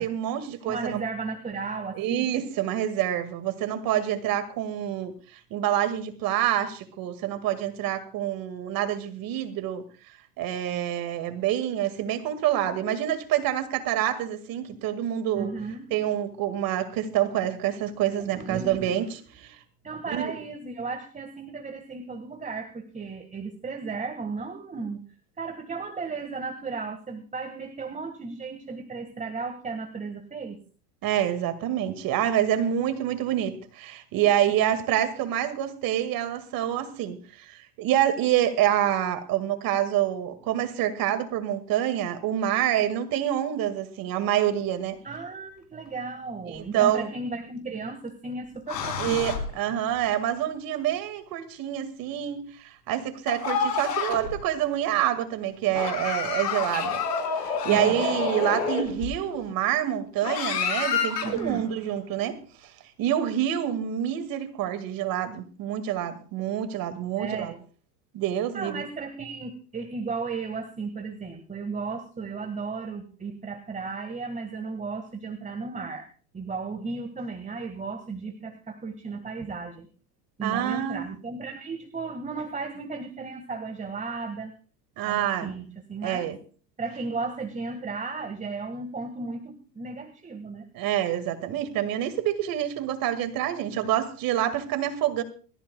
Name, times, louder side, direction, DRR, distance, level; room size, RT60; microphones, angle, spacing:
voice 1, 0.0-1.0 2.0-9.8 10.4-15.5 15.9-19.6 20.1-20.3 31.0-45.0 46.5-47.1 49.0-57.0 57.4-62.4 63.0-67.5 68.1-68.8 80.4-81.0 85.0-85.5 86.0-86.4 90.7-95.2, right 11 dB, 45° right, 2.0 m, -27 dB
voice 2, 0.6-2.3 15.3-15.9 18.2-19.1 19.8-25.0 25.4-30.6 45.0-49.2 57.7-58.0 61.2-61.6 67.2-67.6 68.5-79.9 80.4-84.5 85.0-86.3 86.8-90.7, right 4 dB, 15° right, 1.7 m, -35 dB
sound 1, 46.6-46.7 48.7-49.8 53.3-54.4 55.7-59.3 60.2-61.6, left 6 dB, 85° left, 4.0 m, -28 dB
23.5 x 14.0 x 2.3 m
hypercardioid pair, 105°, 47 cm